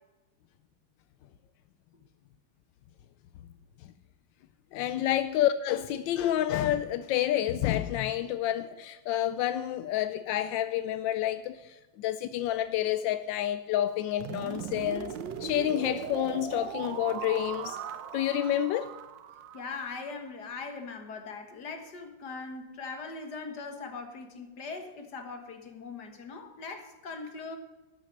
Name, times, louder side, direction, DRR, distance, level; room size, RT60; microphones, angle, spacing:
voice 1, 4.7-15.1 15.4-17.8 18.1-18.9, left 12 dB, 85° left, 1.3 m, -29 dB
sound 1, 14.2-20.1, right 8 dB, 80° right, 1.5 m, -39 dB
voice 2, 19.5-27.6, left 4 dB, 65° left, 2.1 m, -40 dB
12.5 x 9.2 x 6.4 m
omnidirectional pair, 2.0 m